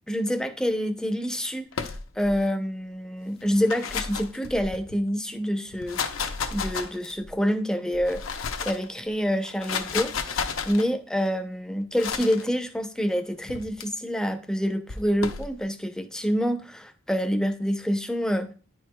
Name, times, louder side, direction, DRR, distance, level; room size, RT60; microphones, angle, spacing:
voice 1, 0.1-1.9 2.2-18.5, equal, 5° left, 6 dB, 0.5 m, -27 dB
sound 1, 1.7-2.4 3.4-5.0 5.7-7.3 7.9-8.9 9.4-10.9 12.0-12.4 13.5-13.8 14.9-15.5, left 6 dB, 70° left, 0.6 m, -32 dB
9.8 x 4.6 x 2.2 m, 0.39 s
head